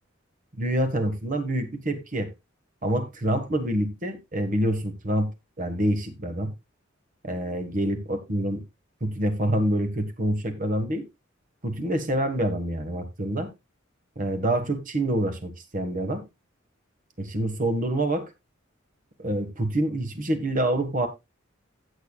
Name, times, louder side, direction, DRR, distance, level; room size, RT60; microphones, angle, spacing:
voice 1, 0.5-2.3 2.8-5.3 5.6-6.5 7.2-8.6 9.0-11.1 11.6-13.5 14.1-16.2 17.2-18.3 19.2-21.1, right 1 dB, 45° right, 1.6 m, -26 dB
16.5 x 6.7 x 2.3 m
head